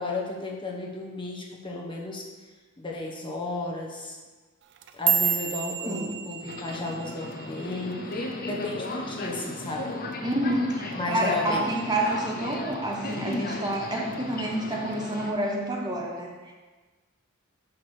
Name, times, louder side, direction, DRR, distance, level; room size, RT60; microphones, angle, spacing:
voice 1, 0.0-2.3 2.8-4.2 4.9-10.0 10.9-11.7, left 2 dB, 25° left, -1 dB, 1.1 m, -33 dB
sound 1, 4.6-9.0 9.3-9.7 10.1-10.5 10.9-11.1 11.7-12.1 12.5-13.3 13.7-14.1 14.9-15.0, right 7 dB, 60° right, 0.5 m, -30 dB
Subway metro underground, 6.4-15.3, left 2 dB, 45° left, 0.7 m, -35 dB
voice 2, 10.2-16.5, right 1 dB, 20° right, -1 dB, 0.8 m, -29 dB
6.2 x 4.8 x 6.1 m, 1.3 s
head